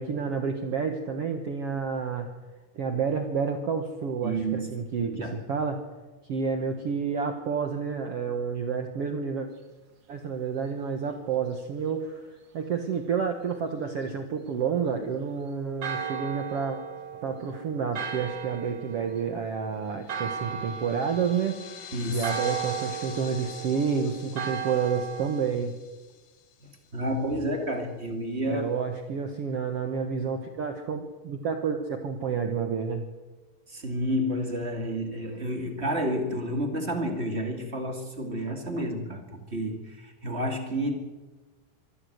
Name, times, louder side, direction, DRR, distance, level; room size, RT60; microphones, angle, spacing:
voice 1, 0.0-2.3 2.7-5.8 6.3-9.5 10.1-12.2 12.5-16.8 17.1-21.6 22.1-25.7 28.5-33.0, right 6 dB, 90° right, 6 dB, 1.3 m, -29 dB
voice 2, 4.2-5.4 21.9-22.3 26.6-28.6 33.7-41.0, equal, 30° right, 4 dB, 1.3 m, -30 dB
Church bell, 15.8-25.5, right 8 dB, 55° right, 1.2 m, -36 dB
sound 1, 20.0-26.9, left 9 dB, 70° left, 3.5 m, -45 dB
24.5 x 13.5 x 8.0 m, 1.3 s
omnidirectional pair, 4.8 m